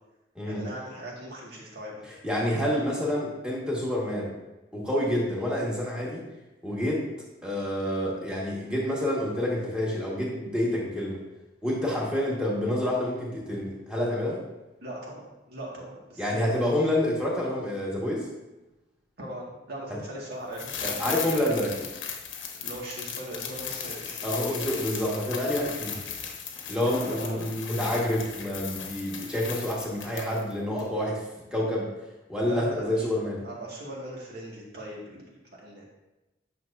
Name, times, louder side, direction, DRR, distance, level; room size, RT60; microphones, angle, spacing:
voice 1, 0.5-2.0 14.8-15.2 15.5-16.6 19.2-21.4 22.5-24.4 26.9-27.5 32.4-33.1 33.4-35.2 35.6-35.8, right 1 dB, 60° right, -3 dB, 2.0 m, -39 dB
voice 2, 2.2-4.3 4.7-6.2 6.6-7.0 7.4-11.2 11.6-14.4 16.2-18.3 20.8-21.9 24.2-26.0 26.7-31.2 31.5-31.9 32.3-33.4, left 1 dB, 5° right, -5 dB, 1.7 m, -28 dB
sound 1, 20.5-30.5 30.8-30.9, left 7 dB, 90° left, 1.0 m, -37 dB
9.4 x 6.3 x 2.7 m, 1.0 s
head